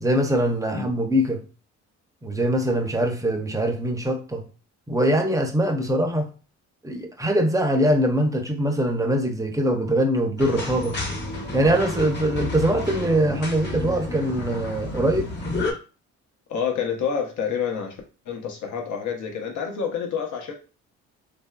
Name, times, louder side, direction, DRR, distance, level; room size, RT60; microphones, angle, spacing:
voice 1, 0.0-1.4 2.2-4.4 4.9-6.3 6.8-11.0 11.5-15.3, right 1 dB, 10° right, 0.6 m, -22 dB
sound 1, 10.4-15.7, left 2 dB, 35° left, 0.9 m, -31 dB
voice 2, 16.5-18.0 18.3-20.5, left 7 dB, 75° left, 0.9 m, -28 dB
3.2 x 2.5 x 2.3 m
cardioid pair, 90°, 30 cm